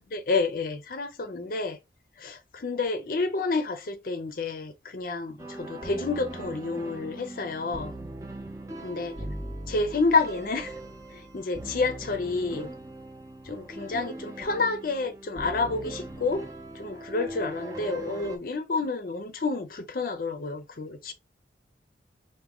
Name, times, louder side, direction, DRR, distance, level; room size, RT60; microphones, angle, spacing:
voice 1, 0.1-1.8 2.2-7.9 8.8-9.1 9.7-10.7 11.1-12.7 13.4-16.5 16.7-21.1, left 3 dB, 50° left, 0.5 m, -29 dB
sound 1, 5.4-18.4, right 1 dB, 20° right, 0.6 m, -40 dB
4.8 x 2.2 x 3.4 m
head